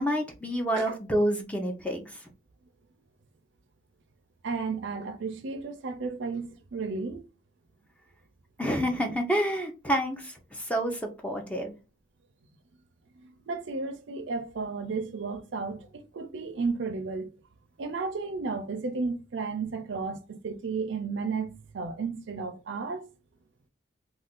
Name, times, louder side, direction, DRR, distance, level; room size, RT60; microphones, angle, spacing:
voice 1, 0.0-2.2 8.6-11.7, equal, 5° left, 0.5 m, -28 dB
voice 2, 4.4-7.3 13.2-17.3 17.8-23.1, right 4 dB, 65° right, 0.4 m, -33 dB
2.4 x 2.3 x 3.5 m
head